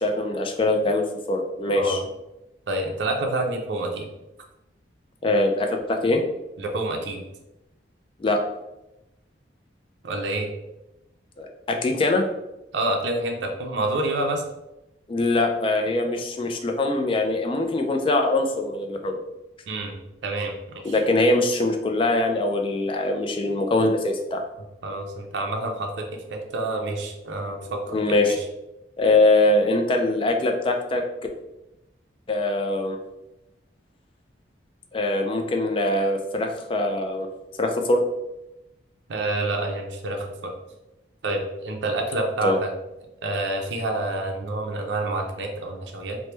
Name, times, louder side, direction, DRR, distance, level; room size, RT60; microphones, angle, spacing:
voice 1, 0.0-2.0 5.2-6.2 8.2-8.4 11.4-12.3 15.1-19.2 20.8-24.4 27.9-28.4 29.0-31.0 32.3-33.0 34.9-37.3 37.6-38.0 42.4-42.6, left 2 dB, 30° left, 4 dB, 0.3 m, -22 dB
voice 2, 2.7-4.1 6.6-7.2 10.0-10.5 12.7-14.4 19.7-20.6 20.9-21.0 24.8-28.4 39.1-40.5 41.2-42.7 43.2-46.2, right 2 dB, 65° right, 2 dB, 0.5 m, -28 dB
3.0 x 2.1 x 3.2 m, 0.95 s
head